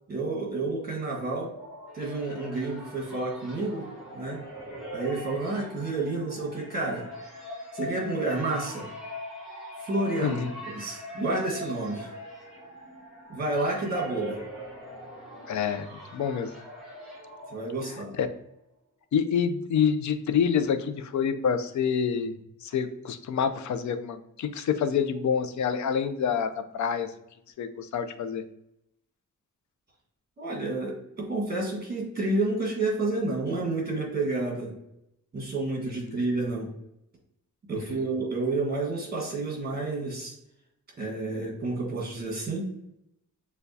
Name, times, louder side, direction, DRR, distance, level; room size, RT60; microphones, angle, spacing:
voice 1, 0.1-1.5 1.9-3.9 4.1-4.4 4.9-7.1 7.7-8.9 9.8-10.4 10.7-12.1 13.3-14.4 17.5-18.1 30.4-34.7 35.3-36.7 37.7-40.3 41.0-42.7, right 2 dB, 30° right, 0 dB, 1.3 m, -30 dB
sound 1, 1.4-18.1, left 1 dB, ahead, 1.2 m, -41 dB
voice 2, 10.2-10.5 15.5-16.5 18.2-18.3 19.1-22.3 22.6-27.1 27.6-28.4 35.8-36.2, left 7 dB, 60° left, 10 dB, 0.5 m, -27 dB
6.7 x 2.3 x 2.6 m, 0.81 s
wide cardioid pair, 155°, 32 cm